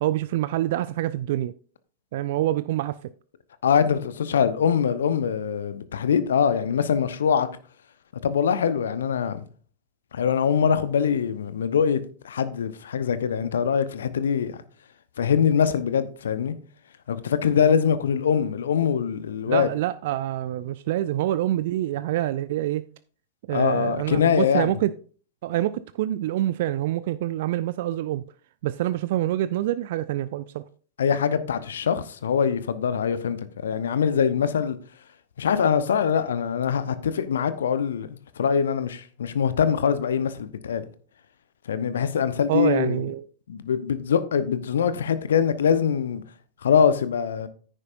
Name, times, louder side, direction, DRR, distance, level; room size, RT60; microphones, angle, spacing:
voice 1, 0.0-1.5 2.1-2.9 19.4-22.8 23.5-24.9 25.4-28.2 28.6-30.6 42.5-43.3, right 13 dB, 55° right, 0.3 m, -26 dB
voice 2, 3.6-7.5 8.2-9.5 10.1-14.6 15.2-16.5 17.1-19.7 23.5-24.8 31.0-33.4 33.6-34.8 35.4-40.9 41.7-43.1 43.5-46.2 46.6-47.5, left 7 dB, 65° left, 0.8 m, -23 dB
9.9 x 9.7 x 2.6 m
figure-of-eight pair, 90°, 0 cm